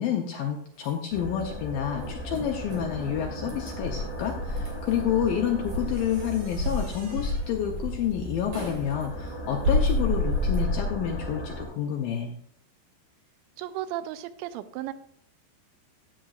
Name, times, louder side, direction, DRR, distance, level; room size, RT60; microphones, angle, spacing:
voice 1, 0.0-12.3, left 9 dB, 85° left, 2 dB, 2.0 m, -29 dB
sound 1, 0.7-10.6, right 2 dB, 45° right, 4.0 m, -46 dB
sound 2, 1.1-11.7, equal, 30° left, 4.8 m, -37 dB
Insect, 3.8-6.1 6.6-8.0 9.6-11.3, left 1 dB, 65° right, 2.2 m, -28 dB
voice 2, 13.6-14.9, right 13 dB, 90° right, 13 dB, 2.9 m, -34 dB
15.0 x 7.4 x 2.4 m, 0.64 s
omnidirectional pair, 5.1 m